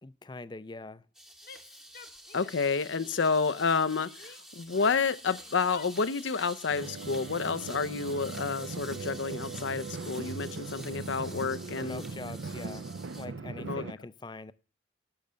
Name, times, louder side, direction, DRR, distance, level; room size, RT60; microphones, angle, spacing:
voice 1, 0.0-1.0 11.7-14.5, left 3 dB, 25° left, 0.4 m, -43 dB
sound 1, 1.1-13.3, equal, 5° right, 0.8 m, -48 dB
Female speech woman speaking / Yell, 1.4-2.6 2.9-4.4 4.7-6.6, left 5 dB, 50° left, 1.0 m, -51 dB
voice 2, 2.3-12.0 13.6-13.8, left 5 dB, 75° left, 0.6 m, -30 dB
sound 2, 6.7-13.9, right 4 dB, 70° right, 0.5 m, -40 dB
12.0 x 6.3 x 6.8 m
head